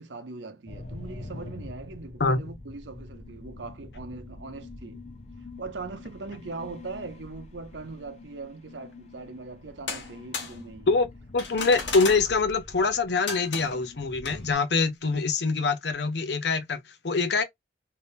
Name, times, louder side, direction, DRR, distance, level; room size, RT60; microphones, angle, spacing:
voice 1, 0.0-5.0 5.6-10.9, right 3 dB, 85° right, 0.8 m, -40 dB
sound 1, 0.7-14.5, left 2 dB, 35° left, 0.7 m, -45 dB
sound 2, 9.9-10.6 11.4-12.3 13.3-13.8 14.2-14.4, left 5 dB, 90° left, 1.0 m, -34 dB
voice 2, 11.3-17.4, left 4 dB, 70° left, 0.7 m, -24 dB
3.4 x 2.8 x 2.6 m
head